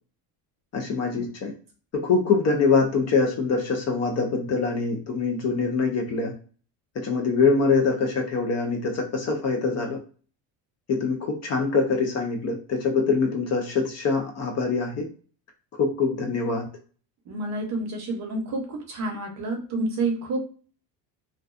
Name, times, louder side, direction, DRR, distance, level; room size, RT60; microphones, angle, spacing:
voice 1, 0.7-1.5 1.9-6.3 7.0-10.0 10.9-15.0 15.8-16.7, left 4 dB, 40° left, 3 dB, 0.4 m, -24 dB
voice 2, 17.3-20.4, right 2 dB, 40° right, 2 dB, 0.6 m, -29 dB
2.4 x 2.2 x 2.4 m, 0.40 s
cardioid pair, 165°, 44 cm